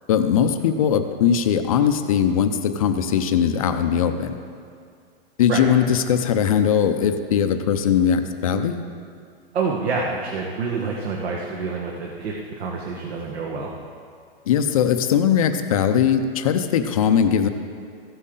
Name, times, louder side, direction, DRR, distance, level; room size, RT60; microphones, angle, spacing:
voice 1, 0.1-4.3 5.4-8.8 14.5-17.5, left 8 dB, 35° left, 8 dB, 0.5 m, -20 dB
voice 2, 9.5-13.7, right 4 dB, 75° right, -1 dB, 1.4 m, -27 dB
15.5 x 8.2 x 3.8 m, 2.3 s
supercardioid pair, 170°, 32 cm